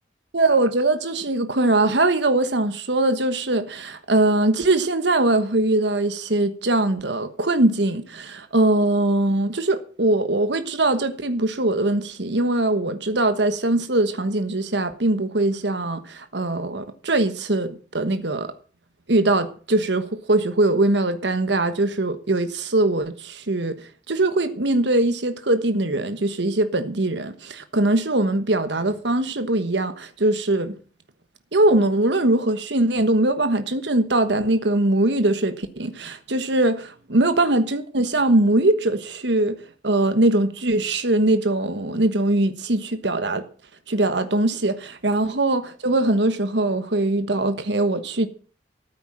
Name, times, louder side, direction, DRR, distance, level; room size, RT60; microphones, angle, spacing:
voice 1, 0.3-18.5 19.1-23.8 24.1-30.7 31.5-39.6 39.8-43.4 43.9-48.3, right 2 dB, 70° right, 1.3 m, -21 dB
14.0 x 8.9 x 7.5 m
head